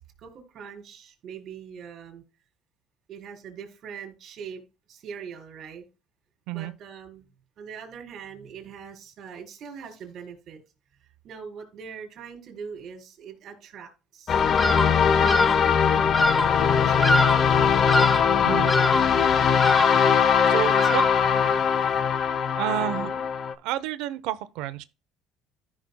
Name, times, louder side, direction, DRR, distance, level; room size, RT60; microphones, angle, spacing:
voice 1, 0.0-2.2 3.1-4.6 4.9-5.9 6.5-7.2 7.6-10.6 11.2-14.5 14.8-16.1 16.4-17.4 20.6-21.0 21.3-21.6 22.7-23.2, right 6 dB, 50° right, 4.2 m, -42 dB
sound 1, 14.3-23.5, left 7 dB, 40° left, 0.8 m, -21 dB
Bird vocalization bird call bird song, 14.6-15.0 15.2-15.7 16.1-16.6 17.0-17.5 17.9-18.3 18.7-19.2 19.6-20.1 20.8-21.3, left 1 dB, 10° left, 0.6 m, -25 dB
voice 2, 20.4-21.0 22.6-23.1 23.6-24.8, right 13 dB, 80° right, 0.8 m, -29 dB
14.5 x 6.1 x 2.3 m
cardioid pair, 125°, 0 cm